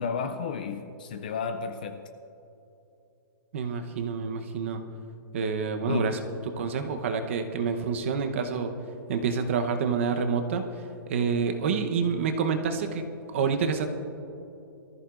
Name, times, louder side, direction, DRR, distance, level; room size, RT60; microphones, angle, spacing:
voice 1, 0.0-2.1 5.9-6.2, left 5 dB, 25° left, 0.4 m, -32 dB
voice 2, 3.5-4.8 5.3-6.2 6.6-8.7 9.1-10.7 11.1-13.9, right 5 dB, 35° right, 0.9 m, -28 dB
23.5 x 14.0 x 2.5 m
hypercardioid pair, 175°, 12 cm